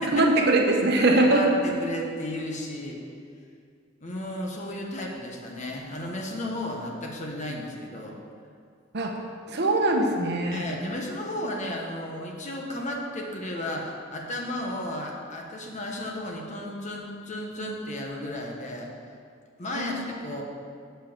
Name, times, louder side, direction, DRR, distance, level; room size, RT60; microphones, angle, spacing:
voice 1, 0.1-1.6 8.9-9.2 9.5-10.7 19.7-20.1, right 2 dB, 60° right, 2 dB, 1.0 m, -22 dB
voice 2, 1.1-3.0 4.0-8.2 10.5-18.9 19.6-20.4, left 1 dB, 40° left, 0 dB, 1.2 m, -34 dB
7.5 x 5.6 x 7.2 m, 2.2 s
head